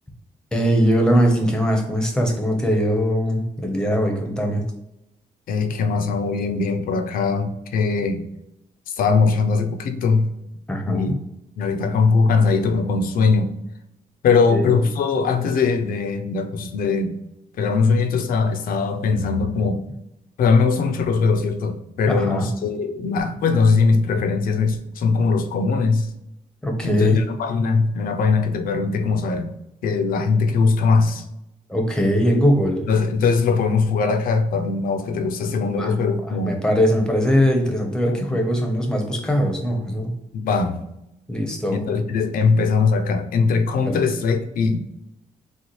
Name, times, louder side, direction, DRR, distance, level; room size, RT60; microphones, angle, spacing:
voice 1, 0.5-4.6 10.7-11.2 14.5-14.7 22.2-22.5 26.6-27.2 31.7-32.8 35.6-35.9 36.4-40.1 41.3-41.8 43.8-44.0, equal, 5° left, 2 dB, 0.9 m, -21 dB
voice 2, 5.5-8.2 8.9-10.3 10.9-11.2 11.6-13.5 14.2-17.1 17.6-19.8 20.4-26.1 26.8-29.5 29.8-31.2 32.9-36.6 38.1-38.4 40.3-40.8 41.7-44.8, left 4 dB, 85° left, 6 dB, 0.7 m, -20 dB
6.4 x 2.4 x 3.1 m, 0.86 s
wide cardioid pair, 165°, 14 cm